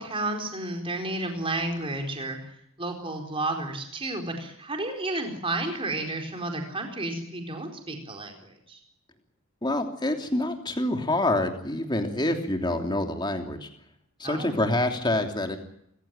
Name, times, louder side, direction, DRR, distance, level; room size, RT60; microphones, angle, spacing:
voice 1, 0.0-2.4 2.8-8.8 14.2-14.5, right 2 dB, 25° right, 3 dB, 4.4 m, -32 dB
voice 2, 9.6-13.7 14.2-15.6, left 1 dB, 20° left, 4 dB, 3.0 m, -26 dB
28.5 x 16.0 x 9.0 m, 0.75 s
head